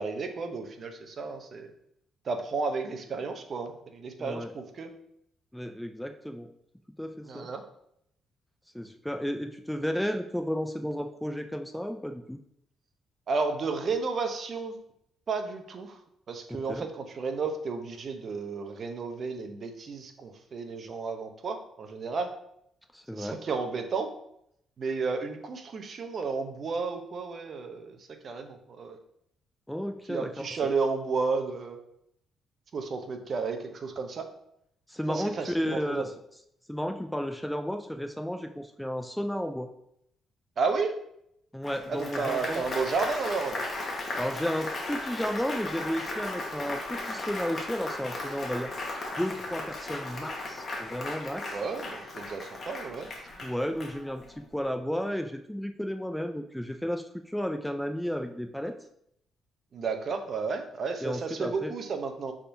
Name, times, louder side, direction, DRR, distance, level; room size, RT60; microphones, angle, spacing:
voice 1, 0.0-1.7 2.2-4.9 7.3-7.6 13.3-14.7 15.3-16.0 16.3-22.3 23.1-24.1 24.8-28.0 28.2-29.0 30.1-31.8 32.7-34.2 35.1-36.1 40.6-41.0 41.9-43.6 51.5-53.1 59.7-62.3, right 4 dB, 50° right, 6 dB, 0.6 m, -32 dB
voice 2, 4.2-4.5 5.5-6.5 7.0-7.5 8.7-12.4 16.7-16.9 22.9-23.4 29.7-30.6 34.9-36.1 36.7-39.7 41.5-42.6 44.2-48.7 49.2-51.6 53.4-58.8 61.0-61.7, equal, 5° left, 6 dB, 0.3 m, -33 dB
Applause, 41.6-54.4, left 2 dB, 40° left, 1.1 m, -36 dB
5.6 x 3.6 x 2.6 m, 0.74 s
cardioid pair, 90°, 0 cm